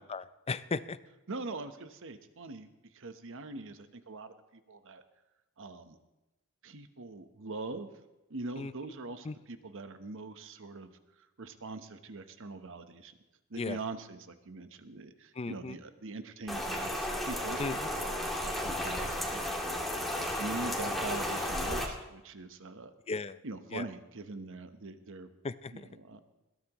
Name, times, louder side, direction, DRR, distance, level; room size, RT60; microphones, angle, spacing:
voice 1, 0.1-1.0 8.6-8.7 9.3-9.4 13.6-13.8 15.4-15.8 17.6-17.8 23.1-23.4 23.7-23.9 25.4-25.9, left 4 dB, 25° left, 14 dB, 0.5 m, -36 dB
voice 2, 1.3-5.0 5.6-6.0 6.6-7.9 8.3-10.9 11.2-13.1 13.5-17.6 17.9-19.8 20.1-22.9 23.4-25.3 25.7-26.2, right 3 dB, 60° right, 9 dB, 1.1 m, -43 dB
Rain, 16.5-21.9, left 1 dB, ahead, 2.1 m, -33 dB
21.0 x 16.0 x 3.1 m, 0.99 s
head